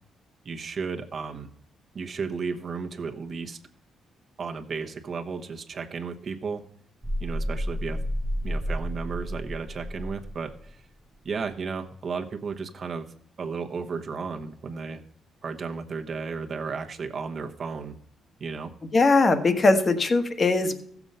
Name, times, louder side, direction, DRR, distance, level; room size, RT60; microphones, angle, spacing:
voice 1, 0.4-1.5 1.9-3.6 4.4-6.6 7.2-8.0 8.4-10.8 11.2-15.0 15.4-18.0 18.4-18.7, right 5 dB, 45° right, 4 dB, 1.0 m, -34 dB
sound 1, 7.0-10.7, equal, 5° right, 0.6 m, -31 dB
voice 2, 18.9-20.7, left 3 dB, 35° left, 9 dB, 1.3 m, -20 dB
14.5 x 7.1 x 5.5 m, 0.68 s
cardioid pair, 90°, 0 cm